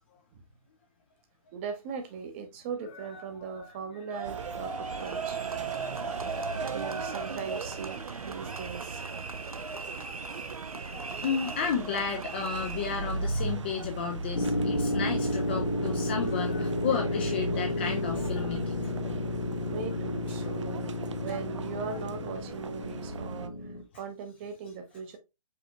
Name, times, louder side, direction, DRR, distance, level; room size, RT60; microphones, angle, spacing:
voice 1, 1.5-5.4 6.6-9.4 15.2-15.3 19.7-25.2, right 6 dB, 20° right, 0.7 m, -40 dB
voice 2, 2.9-3.8 5.0-5.1 6.3-6.4 8.4-8.5 9.2-9.4 9.8-10.4 10.7-18.9 20.5-20.6, left 6 dB, 20° left, 0.4 m, -34 dB
sound 1, 4.1-13.1, right 4 dB, 85° right, 0.7 m, -38 dB
sound 2, 4.2-23.5, right 4 dB, 55° right, 0.5 m, -39 dB
sound 3, 14.3-23.8, left 1 dB, 85° left, 1.0 m, -31 dB
5.1 x 3.2 x 2.8 m
figure-of-eight pair, 140°, 18 cm